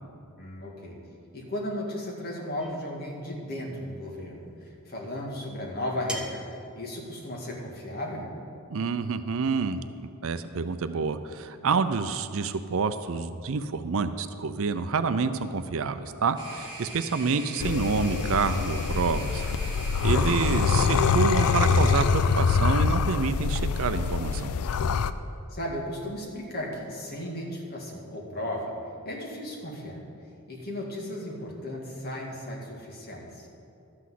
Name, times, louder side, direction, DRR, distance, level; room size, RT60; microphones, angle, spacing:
voice 1, 0.4-1.0 1.3-6.4 6.8-8.3 20.1-20.8 25.5-28.7 29.0-30.0 30.5-33.5, left 1 dB, 45° left, -1 dB, 2.0 m, -35 dB
sound 1, 2.6-3.0 4.5-4.6 6.1-6.6, right 1 dB, 5° right, 0.7 m, -38 dB
voice 2, 8.7-19.4 20.0-24.5, right 4 dB, 65° right, 11 dB, 0.5 m, -28 dB
sound 2, 16.4-22.1, right 2 dB, 20° right, 2.2 m, -41 dB
sound 3, 17.6-25.1, left 5 dB, 85° left, 0.4 m, -25 dB
12.5 x 6.1 x 7.6 m, 2.6 s
head